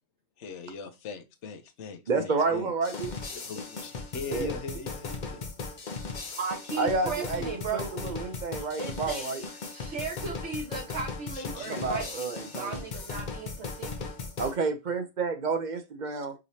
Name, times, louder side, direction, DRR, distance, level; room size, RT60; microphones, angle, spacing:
voice 1, 0.4-2.9 3.3-5.5 8.6-8.7 11.3-11.9, left 4 dB, 85° left, 1.0 m, -40 dB
voice 2, 2.1-3.1 4.3-4.5 6.8-9.4 11.7-12.8 14.4-16.3, right 4 dB, 50° right, 0.7 m, -30 dB
sound 1, 2.8-14.6, left 4 dB, 45° left, 0.8 m, -37 dB
voice 3, 6.3-8.0 8.8-14.1, right 4 dB, 80° right, 1.8 m, -36 dB
4.9 x 3.1 x 2.7 m
omnidirectional pair, 1.2 m